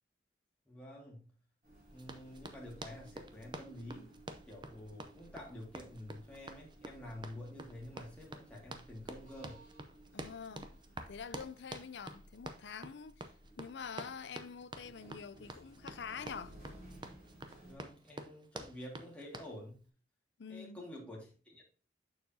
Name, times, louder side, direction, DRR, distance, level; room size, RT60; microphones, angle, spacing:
voice 1, 0.7-1.4 1.9-4.1 4.5-9.7 17.6-19.8 20.5-21.6, left 1 dB, 5° left, 2.0 m, -49 dB
sound 1, 1.6-17.8, right 1 dB, 45° right, 3.6 m, -58 dB
Run, 2.0-19.5, right 2 dB, 25° right, 0.6 m, -48 dB
voice 2, 10.1-10.7 11.1-13.1 13.6-16.5 20.4-20.8, left 6 dB, 70° left, 0.5 m, -46 dB
6.9 x 6.4 x 2.7 m
head